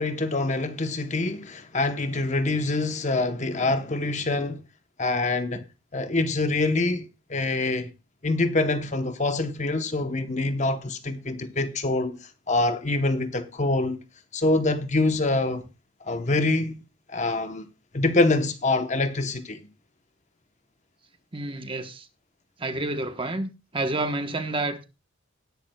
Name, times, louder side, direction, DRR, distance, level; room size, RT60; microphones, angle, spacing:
voice 1, 0.0-4.6 5.0-5.6 5.9-7.9 8.2-12.2 12.5-14.0 14.3-15.6 16.1-16.8 17.1-17.7 17.9-19.6, left 2 dB, 35° left, 0.9 m, -25 dB
voice 2, 21.3-22.1 22.6-24.8, right 2 dB, 25° right, 1.0 m, -29 dB
19.0 x 10.5 x 2.2 m
head